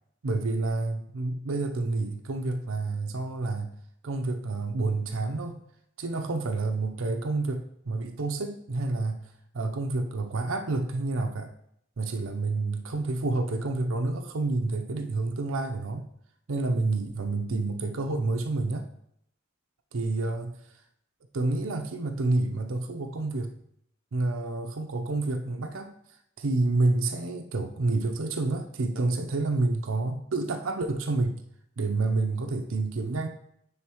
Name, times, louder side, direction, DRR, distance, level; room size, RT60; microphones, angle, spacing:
voice 1, 0.2-3.7 4.0-5.6 6.0-9.2 9.5-11.5 12.0-16.1 16.5-18.8 19.9-20.6 21.3-23.5 24.1-25.9 26.4-31.4 31.8-33.3, right 2 dB, 80° right, 3 dB, 0.6 m, -29 dB
9.6 x 3.9 x 3.0 m, 0.71 s
head